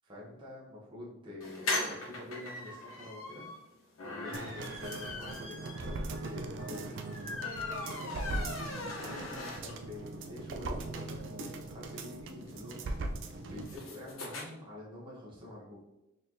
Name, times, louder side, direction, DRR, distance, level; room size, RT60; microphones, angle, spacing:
voice 1, 0.0-3.5 4.1-7.0 9.0-13.0 13.5-15.8, left 2 dB, 25° right, -6 dB, 0.9 m, -47 dB
sound 1, 1.4-10.0 10.4-10.5 10.7-10.8 11.0-14.4, left 2 dB, 80° left, 0.9 m, -40 dB
sound 2, 4.3-13.8 14.1-14.2, right 2 dB, 60° right, 0.4 m, -40 dB
3.9 x 3.2 x 2.7 m, 0.92 s
head